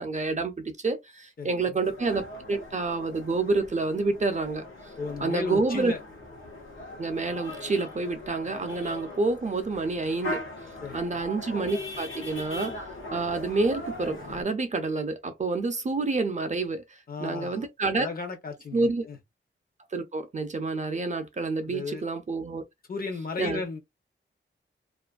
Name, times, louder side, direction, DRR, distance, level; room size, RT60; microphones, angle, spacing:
voice 1, 0.0-4.6 5.2-5.9 7.0-10.4 10.9-18.1 18.7-19.1 19.9-22.6 23.4-23.6, right 3 dB, 35° right, 0.4 m, -28 dB
voice 2, 1.4-1.7 5.0-6.0 10.8-11.2 17.1-17.7 18.0-19.2 21.7-22.0 22.9-23.8, left 4 dB, 45° left, 0.7 m, -35 dB
sound 1, 1.8-14.4, left 2 dB, 80° left, 0.9 m, -40 dB
2.5 x 2.4 x 2.3 m
wide cardioid pair, 160°, 21 cm